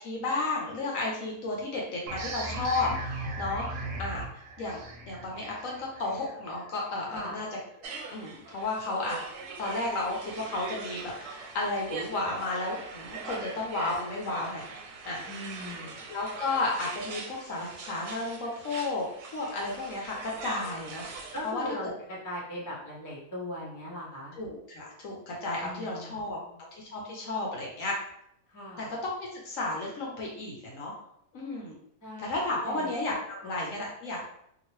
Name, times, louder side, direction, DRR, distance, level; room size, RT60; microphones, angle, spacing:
voice 1, 0.0-3.7 4.0-4.2 4.6-7.5 8.1-9.2 9.6-15.2 16.1-19.1 19.3-21.6 24.4-27.9 28.8-30.9 31.3-31.8 32.2-34.3, left 2 dB, 65° left, -2 dB, 1.1 m, -33 dB
sound 1, 2.1-7.4, right 2 dB, 65° right, 0.9 m, -38 dB
sound 2, 7.8-21.5, right 4 dB, 90° right, 1.1 m, -42 dB
voice 2, 15.2-16.0 21.3-24.4 25.6-26.5 28.5-28.9 32.0-32.3 32.6-32.9 33.4-33.5, equal, 15° left, -6 dB, 0.8 m, -39 dB
2.9 x 2.8 x 3.0 m, 0.73 s
omnidirectional pair, 1.6 m